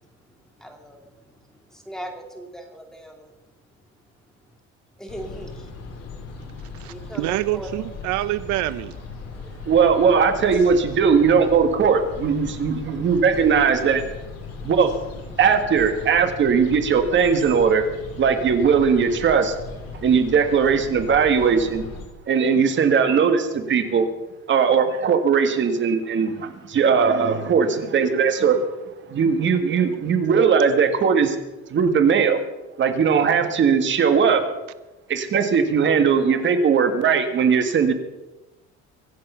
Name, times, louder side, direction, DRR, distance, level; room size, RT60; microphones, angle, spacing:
voice 1, 0.0-1.4 1.9-3.3 5.0-5.7 6.8-7.7 9.4-9.7, right 1 dB, ahead, 3 dB, 2.4 m, -39 dB
sound 1, 5.1-22.1, left 4 dB, 55° left, 3.4 m, -38 dB
voice 2, 6.8-8.9, right 16 dB, 75° right, 15 dB, 0.6 m, -26 dB
voice 3, 9.7-14.0 14.6-14.9 15.4-17.8 18.2-19.5 20.0-21.8 22.3-24.1 24.5-28.6 29.1-31.4 31.7-32.4 32.8-34.5 35.1-37.9, right 6 dB, 40° right, 7 dB, 1.6 m, -19 dB
24.0 x 8.4 x 5.7 m, 1.0 s
cardioid pair, 150°, 30 cm